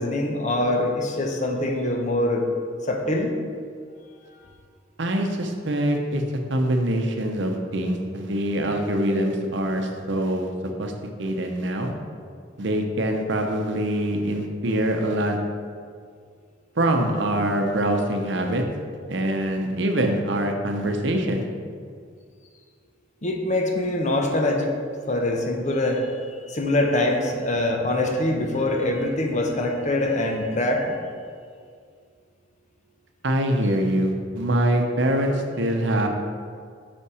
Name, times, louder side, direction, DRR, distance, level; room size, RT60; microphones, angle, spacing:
voice 1, 0.0-2.5 2.8-3.4 23.2-24.7 25.1-30.9, left 1 dB, 40° left, 2 dB, 0.7 m, -24 dB
voice 2, 5.0-6.2 6.5-10.5 10.8-10.9 11.2-11.9 12.6-15.4 16.8-18.6 19.1-21.5 33.2-36.1, right 1 dB, 65° right, 3 dB, 0.7 m, -24 dB
5.6 x 5.2 x 4.8 m, 2.1 s
head